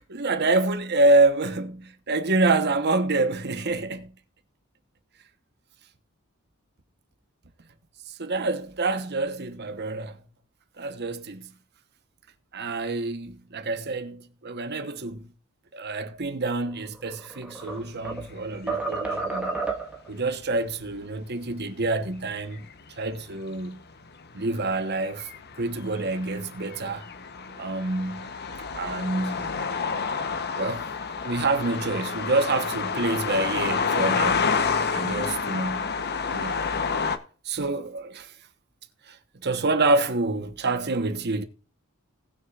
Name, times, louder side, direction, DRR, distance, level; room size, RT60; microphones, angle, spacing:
voice 1, 0.0-4.1 8.2-10.2 10.8-11.5 12.5-15.2 15.7-19.6 20.1-22.6 23.0-23.8 24.3-25.3 25.6-27.1 27.6-28.3 28.7-29.5 30.6-30.9 31.2-34.5 34.9-35.9 36.3-36.6 37.4-38.3 39.1-39.2 39.4-41.4, right 2 dB, 50° right, 1.1 m, -27 dB
sound 1, 16.9-18.3 18.7-20.1, right 3 dB, 5° right, 1.5 m, -31 dB
sound 2, 20.6-21.0 22.2-23.2 23.9-37.2, left 5 dB, 50° left, 1.0 m, -29 dB
19.0 x 6.5 x 2.5 m
head